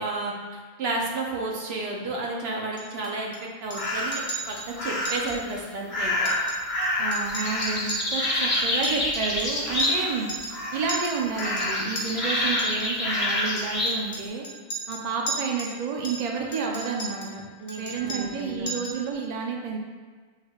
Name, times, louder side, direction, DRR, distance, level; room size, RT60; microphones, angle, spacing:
voice 1, 0.0-3.3 3.6-4.6 4.8-6.1 17.6-18.7, right 2 dB, 70° right, -1 dB, 1.0 m, -32 dB
Chink clink, 2.8-3.4 3.7-3.9 4.1-4.7 5.1-5.4 5.7-5.8 6.1-6.9 7.1-10.0 10.3-10.6 10.9-12.1 12.6-12.9 13.6-15.8 16.0-17.4 17.7-18.4 18.7-19.1, right 2 dB, 40° left, 0.6 m, -36 dB
sound 1, 3.7-4.3 4.8-5.3 5.9-10.2 10.5-11.0 11.3-14.0, left 1 dB, 75° left, 1.2 m, -27 dB
voice 2, 7.0-10.3 10.7-14.4 14.9-17.4 17.8-19.8, right 5 dB, 50° right, 0 dB, 0.6 m, -30 dB
6.5 x 3.2 x 2.3 m, 1.5 s
omnidirectional pair, 1.1 m